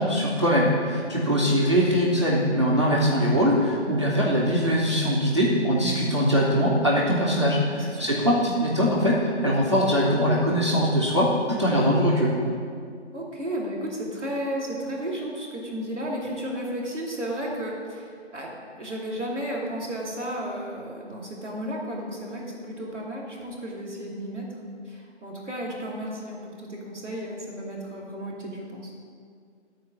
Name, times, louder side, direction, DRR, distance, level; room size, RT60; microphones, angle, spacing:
voice 1, 0.0-12.4, equal, 25° right, -5 dB, 0.8 m, -22 dB
voice 2, 7.7-8.4 13.1-24.4 24.8-28.9, equal, 10° left, -14 dB, 1.0 m, -33 dB
12.0 x 4.5 x 6.1 m, 2.2 s
figure-of-eight pair, 170°, 35 cm